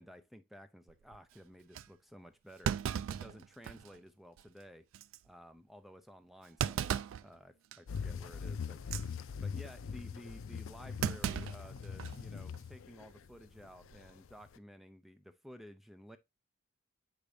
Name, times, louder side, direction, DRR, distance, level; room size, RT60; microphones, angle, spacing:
voice 1, 0.0-2.7 3.1-4.9 5.2-9.0 9.4-16.2, equal, ahead, 0.5 m, -54 dB
Thump thud, 0.9-1.2 1.7-1.9 2.6-4.0 4.4-4.5 4.9-5.2 6.6-7.3 7.7-8.0 8.8-9.1 11.0-12.2 12.5-12.6 13.8-14.1, right 8 dB, 75° right, 0.3 m, -36 dB
sound 1, 7.9-14.6, left 6 dB, 75° left, 0.4 m, -42 dB
7.2 x 5.0 x 2.6 m
head